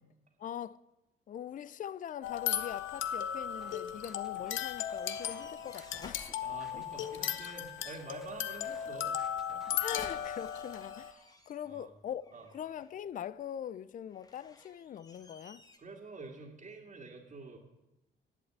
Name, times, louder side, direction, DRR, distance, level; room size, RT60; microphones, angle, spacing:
voice 1, 0.4-0.8 1.3-6.3 6.7-6.8 9.7-12.2 12.5-15.6, left 9 dB, 40° left, 0.4 m, -42 dB
sound 1, 2.2-11.1, left 10 dB, 75° left, 0.8 m, -36 dB
sound 2, 3.6-10.4, right 1 dB, ahead, 1.7 m, -58 dB
sound 3, 4.5-7.1 9.4-11.9 12.2-13.1 14.1-15.8, left 2 dB, 20° left, 1.5 m, -56 dB
voice 2, 6.4-9.1 11.6-11.9 12.3-12.5 15.8-17.6, right 3 dB, 35° right, 2.1 m, -47 dB
11.0 x 8.1 x 8.7 m
cardioid pair, 90°, 20 cm